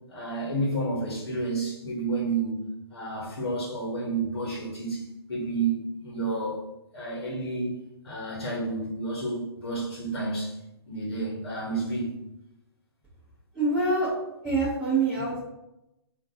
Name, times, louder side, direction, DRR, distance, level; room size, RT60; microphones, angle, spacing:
voice 1, 0.1-2.6 2.9-5.0 5.3-6.6 6.9-7.8 8.0-10.5 10.9-12.1, right 2 dB, 75° left, -4 dB, 1.0 m, -30 dB
voice 2, 13.5-14.1 14.4-15.4, right 3 dB, 5° right, -13 dB, 0.9 m, -25 dB
3.7 x 2.5 x 2.8 m, 0.91 s
hypercardioid pair, 140°, 14 cm